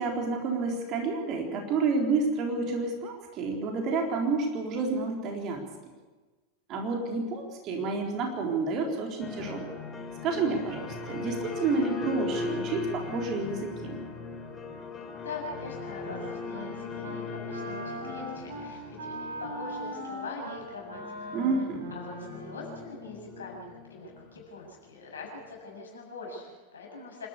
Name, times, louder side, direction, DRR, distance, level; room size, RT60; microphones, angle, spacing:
voice 1, 0.0-5.7 6.7-9.7 10.2-14.0 21.3-21.9, right 4 dB, 35° right, 2 dB, 3.8 m, -29 dB
sound 1, 9.2-25.5, left 4 dB, 20° left, 2.8 m, -39 dB
voice 2, 15.2-18.8 19.1-21.3 21.9-27.3, left 3 dB, 70° left, -1 dB, 7.0 m, -42 dB
Wind instrument woodwind instrument, 15.6-16.7 17.0-17.2 17.5-22.8, equal, 60° right, 4.4 m, -40 dB
27.0 x 13.0 x 8.4 m, 1.3 s
figure-of-eight pair, 90°, 0 cm